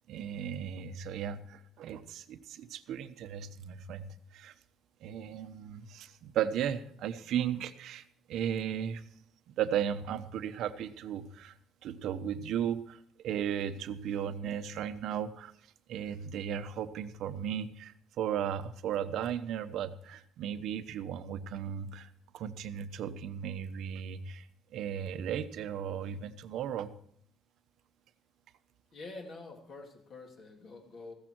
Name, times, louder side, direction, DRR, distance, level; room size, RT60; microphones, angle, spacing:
voice 1, 0.1-4.5 5.0-9.0 9.5-15.5 15.9-26.9, right 9 dB, 70° right, 10 dB, 0.9 m, -36 dB
voice 2, 28.9-31.1, left 3 dB, 45° left, 2 dB, 2.8 m, -47 dB
15.5 x 14.0 x 4.6 m, 0.64 s
cardioid pair, 160°, 0 cm